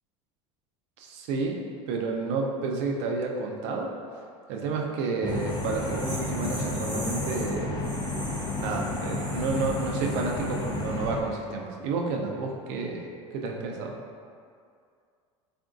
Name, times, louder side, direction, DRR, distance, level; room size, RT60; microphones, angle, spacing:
voice 1, 1.0-1.6 1.9-3.9 4.5-7.9 8.6-13.0 13.3-13.9, right 4 dB, 65° right, 1 dB, 0.5 m, -30 dB
sound 1, 5.2-11.2, left 2 dB, 25° left, 0.4 m, -32 dB
sound 2, 5.3-11.1, right 1 dB, 10° right, 0.7 m, -41 dB
3.5 x 2.5 x 2.4 m, 2.3 s
hypercardioid pair, 90°, 16 cm